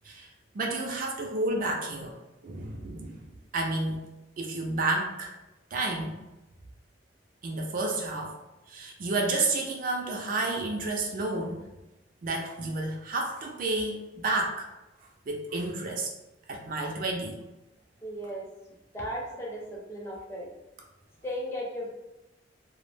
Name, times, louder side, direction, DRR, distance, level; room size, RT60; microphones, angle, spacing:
voice 1, 0.5-2.1 2.4-3.2 3.5-4.1 4.4-5.3 5.7-6.2 7.4-8.3 8.7-11.6 12.2-14.7 15.3-16.1 16.5-17.3, right 2 dB, 45° right, 1 dB, 0.4 m, -30 dB
voice 2, 18.0-18.4 18.9-20.5 21.2-21.9, equal, 15° left, -4 dB, 0.5 m, -35 dB
2.2 x 2.0 x 3.1 m, 1.0 s
head